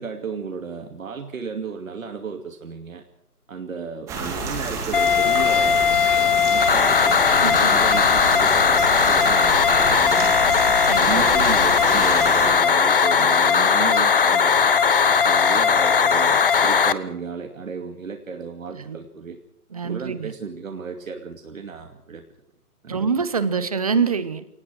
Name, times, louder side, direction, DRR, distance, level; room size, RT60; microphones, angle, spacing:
voice 1, 0.0-3.0 3.5-5.8 6.1-10.5 11.0-14.7 15.2-19.4 19.8-22.2 22.8-23.1, right 5 dB, 60° right, 4 dB, 2.7 m, -34 dB
sound 1, 4.1-12.5, right 4 dB, 5° right, 1.8 m, -29 dB
sound 2, 4.9-16.9, left 6 dB, 35° left, 1.0 m, -18 dB
voice 2, 7.4-7.7 10.9-11.2 18.7-19.0 19.7-20.3 22.9-24.5, right 5 dB, 25° right, 15 dB, 1.0 m, -25 dB
25.5 x 19.0 x 6.1 m, 0.75 s
hypercardioid pair, 165°, 46 cm